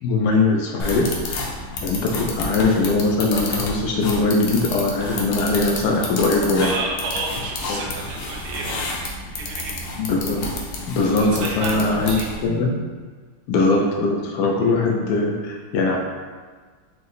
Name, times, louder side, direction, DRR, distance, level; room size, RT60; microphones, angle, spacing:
voice 1, 0.0-1.4 1.8-6.7 7.7-7.8 10.0-10.5 10.9-12.2 12.4-12.8 13.5-16.0, left 3 dB, 85° left, 0 dB, 0.9 m, -21 dB
sound 1, 0.8-12.5, left 2 dB, 70° left, 1.2 m, -30 dB
voice 2, 6.6-8.8 9.3-9.7 11.2-12.3, right 3 dB, 80° right, -2 dB, 0.9 m, -30 dB
4.9 x 2.1 x 3.9 m, 1.5 s
omnidirectional pair, 2.3 m